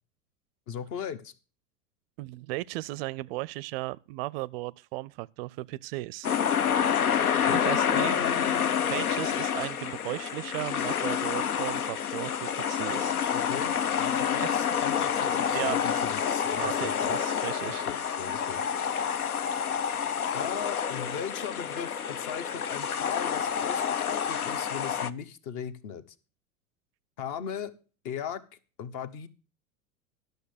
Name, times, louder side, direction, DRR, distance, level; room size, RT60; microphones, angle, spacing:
voice 1, 0.7-1.3 7.5-8.8 13.3-17.1 17.6-18.7 20.3-26.0 27.2-27.7 28.0-28.4 28.8-29.3, left 8 dB, 45° left, 1.1 m, -38 dB
voice 2, 2.2-6.3 7.5-8.2 8.9-13.1 14.4-14.6 15.5-15.8 16.5-17.9, right 19 dB, 45° right, 0.4 m, -36 dB
sound 1, 6.2-25.1, left 8 dB, 85° left, 0.6 m, -28 dB
11.5 x 6.6 x 6.5 m
figure-of-eight pair, 85°, 43 cm